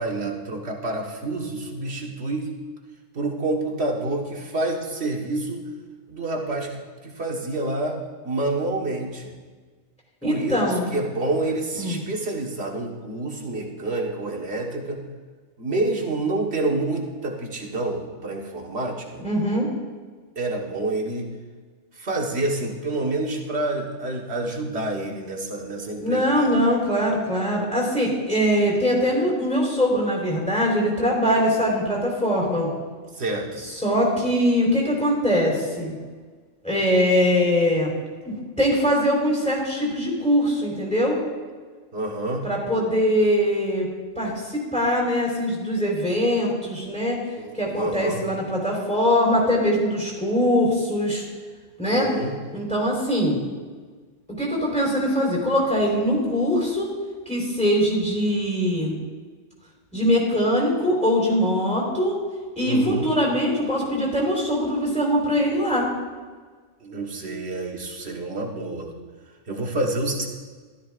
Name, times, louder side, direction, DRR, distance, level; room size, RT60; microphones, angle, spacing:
voice 1, 0.0-2.5 3.1-5.6 6.1-8.0 8.2-9.3 10.2-15.0 15.6-19.2 20.4-21.3 22.0-26.7 33.2-33.6 41.9-42.5 47.4-48.2 51.9-52.3 62.6-63.1 66.8-68.9 69.5-70.3, right 2 dB, 60° right, 0 dB, 1.7 m, -28 dB
voice 2, 10.2-10.9 11.8-12.0 19.2-19.7 26.0-32.7 33.8-35.9 36.6-37.9 38.2-41.2 42.4-43.9 44.2-47.2 47.5-51.2 51.8-52.1 52.5-53.4 54.4-56.9 57.3-58.9 59.9-62.1 62.6-65.9, equal, 5° left, -3 dB, 3.8 m, -22 dB
15.5 x 13.0 x 2.5 m, 1.5 s
omnidirectional pair, 1.2 m